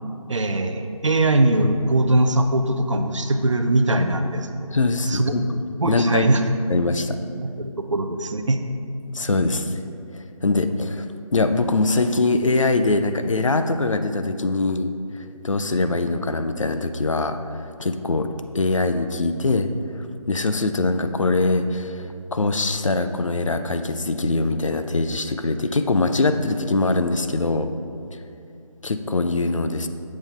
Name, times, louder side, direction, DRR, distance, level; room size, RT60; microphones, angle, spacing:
voice 1, 0.3-4.5 5.1-5.3 5.8-6.4 7.4-8.6, right 2 dB, 60° right, 7 dB, 0.5 m, -21 dB
voice 2, 4.7-5.6 5.9-6.3 6.7-7.2 9.1-9.8 10.1-11.1 11.3-18.3 18.5-19.7 20.3-27.7 28.1-28.2 28.8-29.9, left 3 dB, 60° left, 8 dB, 0.5 m, -23 dB
7.4 x 5.4 x 3.6 m, 2.5 s
figure-of-eight pair, 160°, 18 cm